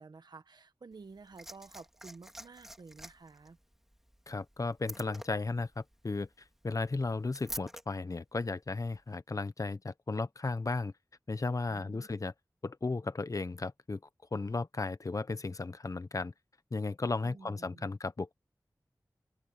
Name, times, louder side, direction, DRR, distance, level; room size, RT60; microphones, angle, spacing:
voice 1, 0.0-3.6 11.7-12.1 17.2-17.9, right 4 dB, 80° right, 1.5 m, -52 dB
Liquid, 0.9-7.8 8.9-9.0, equal, 5° right, 2.3 m, -48 dB
voice 2, 4.3-6.3 6.6-10.9 11.3-12.3 12.6-14.0 14.3-16.3 16.7-18.3, left 3 dB, 50° left, 1.0 m, -35 dB
wide cardioid pair, 55°, 7 cm